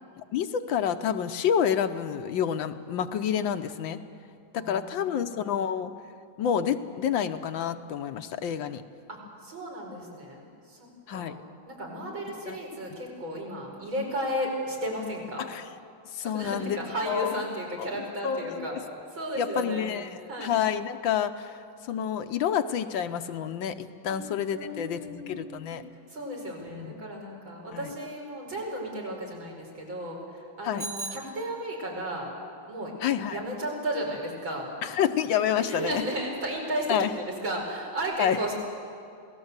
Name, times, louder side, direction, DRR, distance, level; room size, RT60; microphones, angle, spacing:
voice 1, 0.3-4.0 4.5-5.9 6.4-8.8 11.1-11.4 12.5-12.6 15.4-15.6 16.1-16.8 17.1-17.4 17.8-17.9 18.2-18.8 19.4-21.6 21.9-25.8 26.7-26.9 27.7-27.9 30.6-30.8 33.0-33.4 34.8-36.0 36.9-37.1 38.2-38.4, left 8 dB, 70° left, 9 dB, 1.5 m, -28 dB
voice 2, 4.6-5.5 9.1-15.5 16.2-18.7 19.1-20.0 20.3-20.5 24.1-24.3 24.5-25.8 26.1-32.3 32.7-32.9 33.3-34.7 35.5-38.5, right 1 dB, 70° right, -1 dB, 5.6 m, -34 dB
Bicycle bell, 30.8-32.0, right 3 dB, 45° right, 2.3 m, -39 dB
27.5 x 18.0 x 8.1 m, 2.4 s
omnidirectional pair, 2.2 m